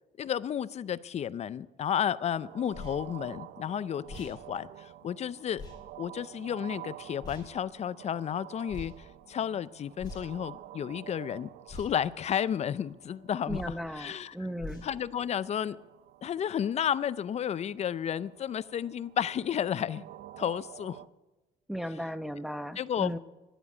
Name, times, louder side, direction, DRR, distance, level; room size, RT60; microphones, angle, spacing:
voice 1, 0.2-5.6 6.0-8.9 9.3-14.4 14.8-15.8 16.2-20.0 20.4-21.0 22.8-23.2, left 9 dB, 40° left, 17 dB, 0.5 m, -32 dB
sound 1, 2.4-21.1, right 13 dB, 75° right, 0.6 m, -50 dB
sound 2, 2.7-3.0 4.0-4.4 5.6-5.8 7.2-7.5 8.7-8.9 10.0-10.4 11.7-11.9 13.5-13.8 14.6-14.9, left 2 dB, 25° left, 5.6 m, -43 dB
voice 2, 13.5-14.8 21.7-23.2, equal, ahead, 12 dB, 0.7 m, -36 dB
11.0 x 11.0 x 8.3 m, 1.1 s
cardioid pair, 110°, 17 cm